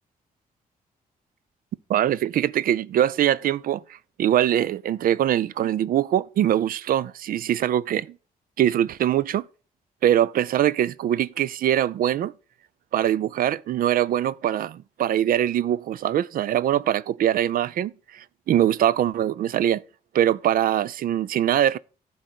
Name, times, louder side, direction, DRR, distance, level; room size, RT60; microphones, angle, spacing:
voice 1, 1.9-3.8 4.2-8.1 8.6-9.4 10.0-12.3 12.9-19.8 20.1-21.8, right 11 dB, 70° right, 0.4 m, -22 dB
11.5 x 3.9 x 6.0 m
cardioid pair, 125°, 15 cm